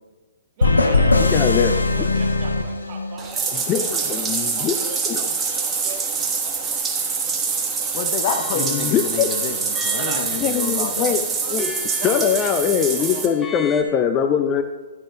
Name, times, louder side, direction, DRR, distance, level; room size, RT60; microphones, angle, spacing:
sound 1, 0.6-3.4, left 3 dB, 80° left, 0.6 m, -19 dB
voice 1, 0.6-5.1 5.4-7.3 9.9-10.8 11.1-11.6 12.0-13.2, right 4 dB, 40° right, 1 dB, 1.5 m, -39 dB
voice 2, 1.3-1.8 3.7-4.8 5.1-5.3 8.6-9.3 10.4-11.2 11.5-11.7 12.0-14.6, left 8 dB, 25° left, 7 dB, 0.4 m, -21 dB
Bathtub (filling or washing), 3.2-13.3, right 5 dB, 15° right, 1.2 m, -25 dB
voice 3, 7.9-11.2, left 6 dB, 45° left, 6 dB, 0.9 m, -29 dB
sound 2, 8.2-13.8, left 4 dB, 10° left, 1.0 m, -38 dB
11.0 x 6.3 x 3.2 m, 1.2 s
figure-of-eight pair, 115°, 0 cm